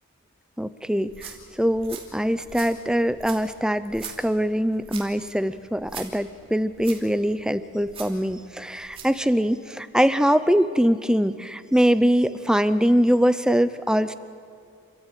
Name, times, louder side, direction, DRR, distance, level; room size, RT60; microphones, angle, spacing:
voice 1, 0.6-14.1, equal, 5° right, 13 dB, 0.5 m, -23 dB
sound 1, 1.0-9.2, right 6 dB, 25° right, 2.8 m, -43 dB
29.5 x 14.0 x 9.2 m, 2.3 s
head